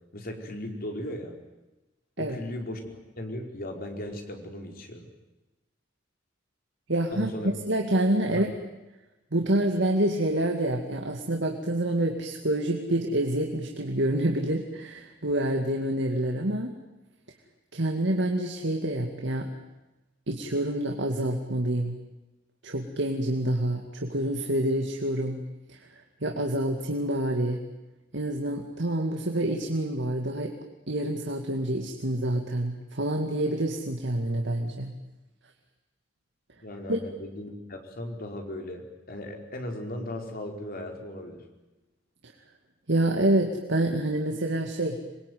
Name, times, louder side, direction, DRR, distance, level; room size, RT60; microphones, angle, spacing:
voice 1, 0.1-1.3 2.2-5.1 7.1-7.5 8.3-8.4 36.6-41.4, left 1 dB, 50° left, 3 dB, 4.6 m, -37 dB
voice 2, 6.9-7.3 7.7-8.5 9.3-16.7 17.7-19.5 20.3-22.0 22.6-25.4 25.7-27.6 28.1-30.5 30.9-34.9 36.9-37.0 42.2-42.3 42.9-45.0, right 1 dB, 65° right, 2 dB, 2.4 m, -27 dB
27.0 x 22.0 x 9.5 m, 1.0 s
head